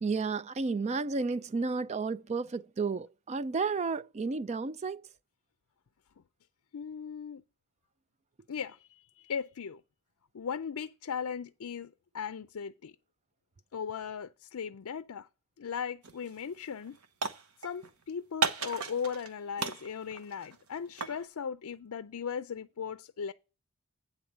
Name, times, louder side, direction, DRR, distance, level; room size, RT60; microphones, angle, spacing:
voice 1, 0.0-5.1, right 4 dB, 30° right, 0.4 m, -32 dB
voice 2, 6.7-7.4 8.5-9.8 10.3-13.0 13.7-15.3 15.6-17.0 17.6-23.3, left 6 dB, 80° left, 0.5 m, -38 dB
sound 1, 16.0-16.3 16.6-17.9 18.4-19.3 19.6-21.2, right 4 dB, 85° right, 1.1 m, -34 dB
9.5 x 3.9 x 7.2 m
head